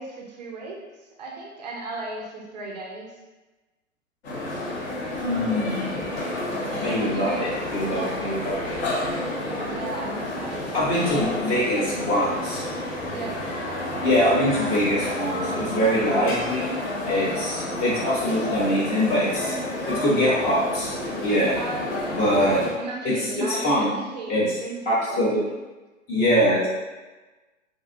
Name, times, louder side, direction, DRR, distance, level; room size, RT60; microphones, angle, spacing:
voice 1, 0.0-3.2 6.7-7.5 9.5-11.7 13.1-13.5 17.2-17.5 21.5-22.2 22.8-25.4, right 2 dB, 35° right, -1 dB, 0.4 m, -36 dB
sound 1, 4.2-22.7, left 1 dB, 55° left, 0.9 m, -30 dB
voice 2, 5.2-6.0 6.7-8.7 10.7-12.6 14.0-16.8 17.1-19.5 19.9-20.9 21.2-21.5 22.2-22.6 23.0-23.2 23.5-23.9 24.3-24.5 24.9-25.4 26.1-26.7, equal, 15° left, -7 dB, 0.6 m, -23 dB
2.6 x 2.3 x 2.6 m, 1.2 s
figure-of-eight pair, 115°, 39 cm